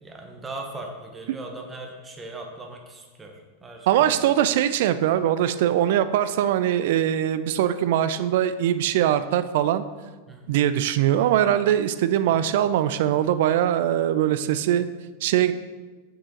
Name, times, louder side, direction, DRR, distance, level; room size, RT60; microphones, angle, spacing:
voice 1, 0.0-4.3 10.3-10.5 12.2-12.4, right 2 dB, 15° right, 2 dB, 0.9 m, -39 dB
voice 2, 3.9-9.8 10.5-14.9 15.2-15.5, right 11 dB, 55° right, 12 dB, 0.3 m, -22 dB
6.4 x 6.1 x 3.0 m, 1.3 s
figure-of-eight pair, 90°, 0 cm